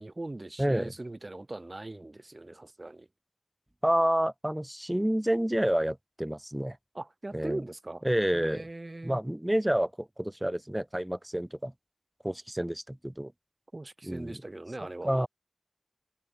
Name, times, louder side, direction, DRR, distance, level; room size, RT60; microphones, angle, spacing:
voice 1, 0.0-3.1 6.9-8.0 8.3-9.2 13.7-15.3, right 2 dB, 60° right, 2.9 m, -40 dB
voice 2, 0.6-0.9 3.8-6.8 7.3-7.6 8.0-8.6 9.0-11.7 12.2-13.3 14.0-14.4 15.0-15.3, right 1 dB, 15° right, 4.4 m, -29 dB
wide cardioid pair, 45°, 0 cm